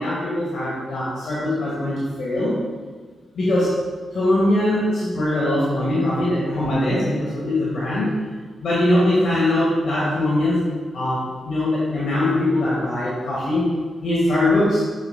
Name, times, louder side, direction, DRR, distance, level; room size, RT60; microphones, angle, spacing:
voice 1, 0.0-2.6 3.3-3.7 4.1-8.1 8.6-10.6 10.9-13.6 14.0-14.8, left 1 dB, 75° left, -7 dB, 1.6 m, -21 dB
8.0 x 6.6 x 2.2 m, 1.5 s
supercardioid pair, 50°, 0 cm